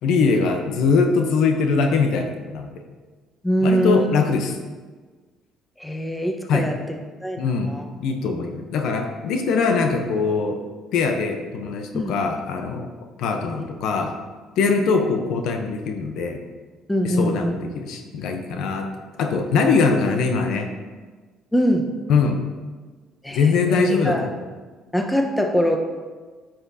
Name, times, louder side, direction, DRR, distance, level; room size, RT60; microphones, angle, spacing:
voice 1, 0.0-2.7 3.6-4.5 6.5-6.7 7.4-7.7 8.0-10.6 10.9-12.9 13.2-14.1 14.6-16.4 17.0-18.9 19.2-20.7 22.1-22.4 23.3-24.4, left 4 dB, 75° left, 4 dB, 0.8 m, -22 dB
voice 2, 3.4-4.1 5.8-6.7 7.2-7.4 7.7-7.8 11.9-12.1 13.6-13.7 16.9-17.5 21.5-21.9 23.2-24.2 24.9-25.8, equal, 5° left, 3 dB, 1.0 m, -22 dB
9.6 x 6.0 x 2.8 m, 1.4 s
supercardioid pair, 75°, 0 cm